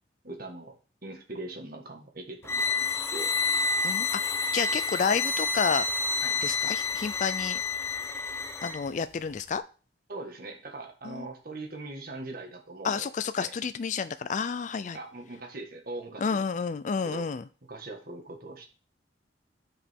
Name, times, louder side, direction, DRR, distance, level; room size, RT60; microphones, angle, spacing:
voice 1, 0.2-0.7 1.0-3.3 6.2-6.4 10.1-13.1 13.4-13.5 14.9-16.4 17.0-17.3 17.7-18.7, right 2 dB, 55° right, 2 dB, 1.6 m, -41 dB
sound 1, 2.5-8.8, left 4 dB, 15° left, 0.7 m, -29 dB
voice 2, 3.8-5.8 6.4-7.6 8.6-9.6 11.0-11.3 12.8-15.0 16.2-17.4, left 5 dB, 45° left, 12 dB, 0.4 m, -30 dB
9.5 x 5.1 x 3.6 m, 0.36 s
head